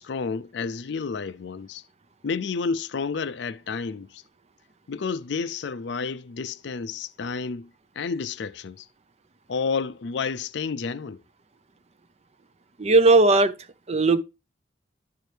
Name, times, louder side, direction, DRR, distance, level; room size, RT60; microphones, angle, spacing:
voice 1, 0.0-1.8 2.2-4.2 4.9-7.7 8.0-8.9 9.5-11.2, left 5 dB, 65° left, 0.4 m, -30 dB
voice 2, 12.8-13.5 13.9-14.2, right 3 dB, 35° right, 0.6 m, -17 dB
11.5 x 4.5 x 3.3 m
head